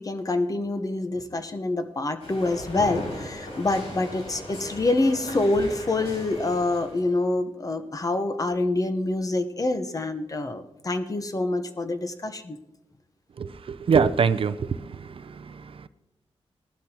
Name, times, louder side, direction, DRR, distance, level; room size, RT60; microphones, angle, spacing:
voice 1, 0.0-12.6, left 2 dB, 35° left, 8 dB, 1.0 m, -26 dB
sound 1, 2.2-7.1, left 1 dB, 90° left, 4.9 m, -37 dB
voice 2, 13.4-15.9, right 6 dB, 60° right, 13 dB, 0.5 m, -25 dB
18.5 x 11.5 x 2.9 m, 0.93 s
wide cardioid pair, 100°, 11 cm